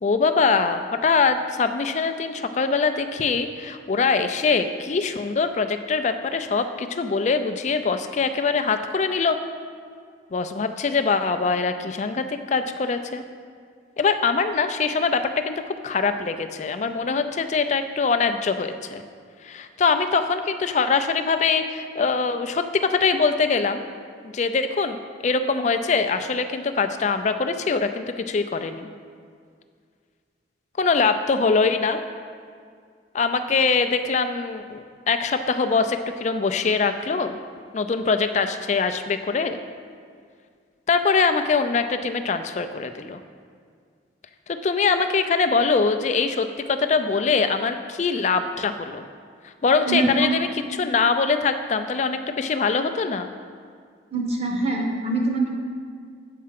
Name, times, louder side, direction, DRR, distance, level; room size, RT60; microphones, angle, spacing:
voice 1, 0.0-9.4 10.3-13.2 14.0-19.0 19.4-23.8 24.2-28.9 30.8-32.0 33.1-37.4 37.7-39.6 40.9-43.2 44.5-49.0 49.6-53.3, left 4 dB, 40° left, 8 dB, 0.4 m, -23 dB
voice 2, 49.8-50.3 54.1-55.7, right 2 dB, 35° right, 1 dB, 0.9 m, -24 dB
7.5 x 4.6 x 5.8 m, 2.1 s
head